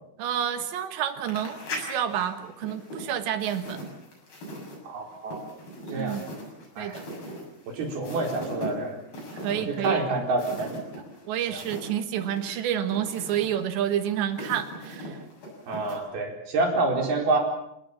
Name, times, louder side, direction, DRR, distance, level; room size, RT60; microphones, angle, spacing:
voice 1, 0.2-3.9 6.0-6.2 6.8-7.0 9.3-10.0 11.3-15.2, right 10 dB, 70° right, 9 dB, 3.4 m, -29 dB
sound 1, 1.2-11.9 12.2-15.9, equal, 45° left, 8.7 m, -40 dB
voice 2, 4.8-5.4 5.9-6.2 6.8-7.0 7.7-9.0 9.7-11.0 11.5-11.6 15.7-17.4, right 2 dB, 50° right, 2 dB, 5.9 m, -28 dB
29.0 x 18.5 x 7.3 m, 0.79 s
omnidirectional pair, 5.8 m